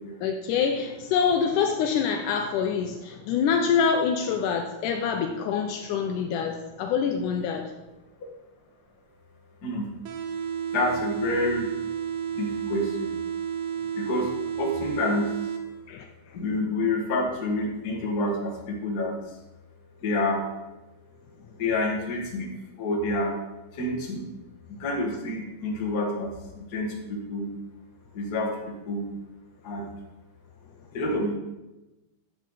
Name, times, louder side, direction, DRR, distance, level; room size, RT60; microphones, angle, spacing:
voice 1, 0.2-7.7 15.9-16.0, left 6 dB, 75° left, 4 dB, 2.0 m, -25 dB
sound 1, 10.0-16.0, right 8 dB, 85° right, 1.4 m, -32 dB
voice 2, 10.7-11.7 12.4-13.2 14.0-15.5 16.3-19.4 20.0-20.5 21.5-22.5 22.8-23.3 23.7-24.3 24.7-27.5 28.1-29.1 29.6-29.9 30.9-31.3, left 2 dB, 40° left, -1 dB, 1.5 m, -28 dB
10.5 x 8.0 x 4.1 m, 1.1 s
omnidirectional pair, 3.9 m